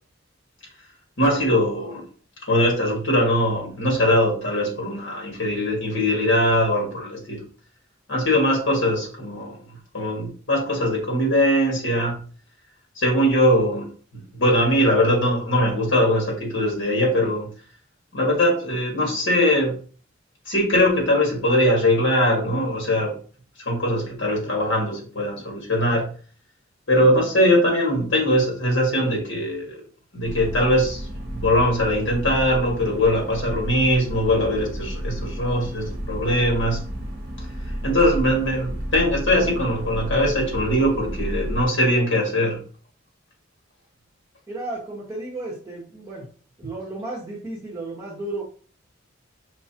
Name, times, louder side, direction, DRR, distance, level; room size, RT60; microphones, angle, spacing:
voice 1, 1.2-2.0 2.5-7.4 8.1-12.2 13.0-13.9 14.1-17.5 18.1-19.8 20.5-23.1 23.6-26.1 26.9-29.8 30.1-31.1 31.3-36.9 37.8-42.6, equal, 65° left, -1 dB, 1.9 m, -21 dB
sound 1, 30.2-41.7, equal, 50° right, 0.9 m, -31 dB
voice 2, 44.5-46.3 46.6-48.4, right 2 dB, 15° right, -8 dB, 1.5 m, -33 dB
5.8 x 3.1 x 2.9 m, 0.41 s
head